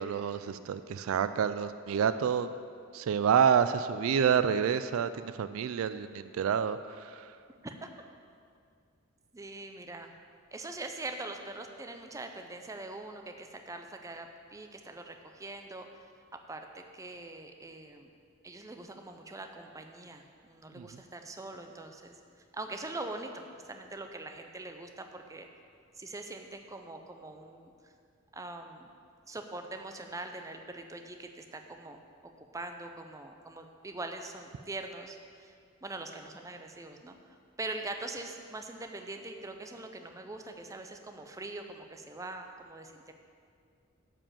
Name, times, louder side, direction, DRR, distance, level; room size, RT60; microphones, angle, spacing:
voice 1, 0.0-2.5 2.9-7.3 20.8-20.9, right 7 dB, 75° right, 12 dB, 0.3 m, -28 dB
voice 2, 9.3-10.1 10.5-15.9 16.3-18.1 18.4-22.1 22.5-25.5 26.0-27.9 28.3-28.9 29.3-32.0 32.4-35.5 35.8-37.2 37.6-43.1, right 2 dB, 15° right, 5 dB, 0.5 m, -43 dB
9.9 x 5.0 x 7.4 m, 2.2 s
head